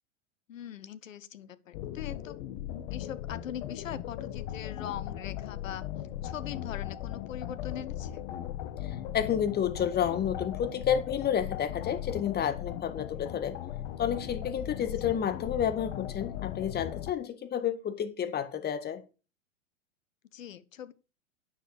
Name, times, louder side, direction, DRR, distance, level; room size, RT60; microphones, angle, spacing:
voice 1, 0.5-2.4 2.9-5.8 6.2-8.2 20.3-20.9, left 9 dB, 85° left, 1.1 m, -41 dB
sound 1, 1.7-17.1, left 11 dB, 55° left, 1.4 m, -38 dB
voice 2, 8.8-13.6 14.0-19.0, left 9 dB, 25° left, 1.8 m, -30 dB
9.6 x 6.6 x 6.5 m
hypercardioid pair, 105°, 38 cm